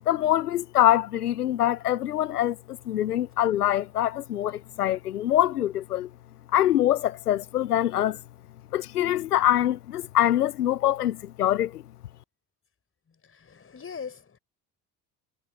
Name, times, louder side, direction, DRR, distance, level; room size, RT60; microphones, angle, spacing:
voice 1, 0.1-6.1 6.5-8.2 8.7-11.8, left 12 dB, 80° left, 0.8 m, -24 dB
voice 2, 13.3-14.4, left 6 dB, 30° left, 5.6 m, -40 dB
figure-of-eight pair, 55°, 46 cm